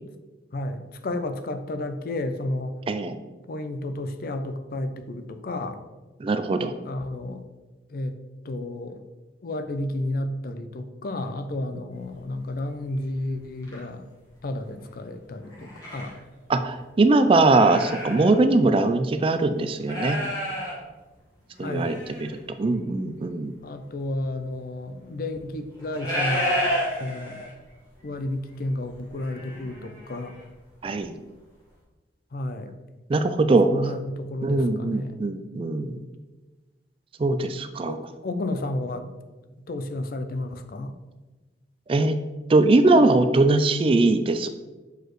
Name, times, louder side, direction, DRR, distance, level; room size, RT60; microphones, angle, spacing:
voice 1, 0.5-2.7 3.5-5.8 6.8-7.4 7.9-8.2 8.4-9.0 9.4-14.0 14.4-16.1 21.6-22.0 23.6-26.6 27.0-27.4 28.0-30.3 32.3-32.7 33.6-35.2 37.8-39.1 39.7-40.9, left 1 dB, 55° left, 9 dB, 0.4 m, -32 dB
voice 2, 6.2-6.7 16.5-20.2 21.6-22.3 22.6-23.5 30.8-31.1 33.1-33.7 34.4-36.0 37.2-38.0 41.9-42.2 42.5-44.5, right 2 dB, 30° right, 9 dB, 0.3 m, -21 dB
sound 1, 12.0-12.1 12.8-12.9 13.5-13.8 15.4-16.2 16.7-16.8 17.4-18.4 18.7-18.8 19.8-20.8 21.5-22.4 24.0-24.1 25.7-27.7 28.0-28.2 28.5-30.4 30.8-30.9, equal, 20° left, 1.7 m, -31 dB
6.7 x 4.6 x 3.1 m, 1.2 s
head